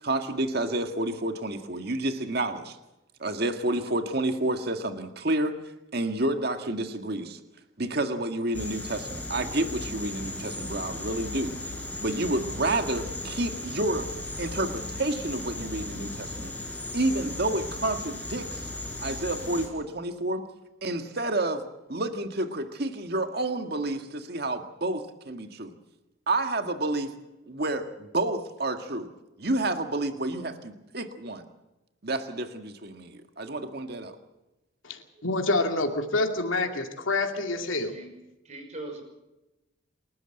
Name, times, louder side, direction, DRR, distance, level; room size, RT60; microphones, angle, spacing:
voice 1, 0.0-2.8 3.2-5.5 5.9-7.4 7.8-11.6 12.0-14.1 14.4-16.5 16.9-18.7 19.0-20.4 20.8-25.7 26.3-27.1 27.5-29.1 29.4-31.5 32.0-34.1, right 2 dB, 50° right, 7 dB, 1.9 m, -29 dB
sound 1, 8.5-19.7, left 2 dB, 10° left, 4.9 m, -36 dB
voice 2, 35.2-37.9, left 2 dB, 80° left, 4 dB, 2.5 m, -27 dB
voice 3, 37.7-38.1 38.4-39.0, right 2 dB, 35° right, 4 dB, 5.9 m, -40 dB
28.5 x 13.5 x 7.9 m, 0.98 s
head